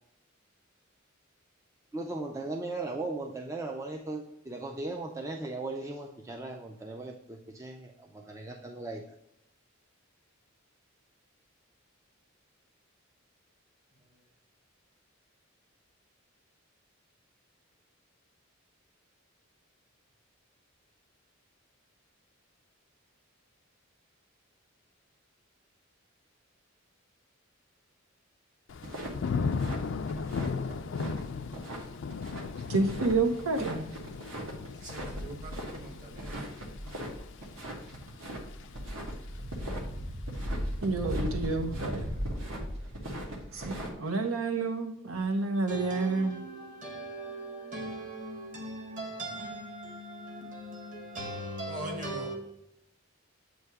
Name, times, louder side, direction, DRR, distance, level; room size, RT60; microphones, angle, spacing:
voice 1, 1.9-9.2, right 2 dB, 15° right, 0.4 m, -38 dB
Thunder / Rain, 28.7-39.6 40.0-40.5, left 5 dB, 60° left, 0.4 m, -37 dB
sound 1, 28.8-43.9, equal, 65° right, 1.2 m, -38 dB
voice 2, 32.7-33.9 40.8-42.1 43.5-46.3, right 3 dB, 85° right, 0.7 m, -29 dB
voice 3, 34.8-36.3 45.7-52.3, right 1 dB, 40° right, 1.4 m, -39 dB
7.8 x 2.8 x 4.6 m
head